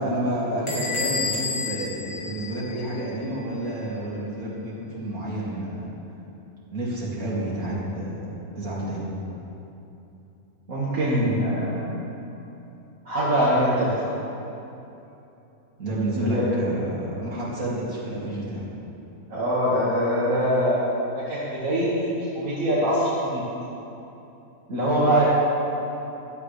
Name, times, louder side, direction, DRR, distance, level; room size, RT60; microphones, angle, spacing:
voice 1, 0.0-5.9 6.7-8.3 8.5-9.1 15.8-18.6, right 1 dB, 90° right, -9 dB, 3.0 m, -29 dB
Bell / Door, 0.7-3.2, left 4 dB, 20° left, 2.0 m, -30 dB
voice 2, 10.7-11.9 13.1-13.9 16.1-16.5 19.3-20.9 21.3-21.9 22.2-23.4 24.7-25.3, equal, 65° right, -9 dB, 2.4 m, -23 dB
16.0 x 12.0 x 3.4 m, 2.9 s
omnidirectional pair, 1.5 m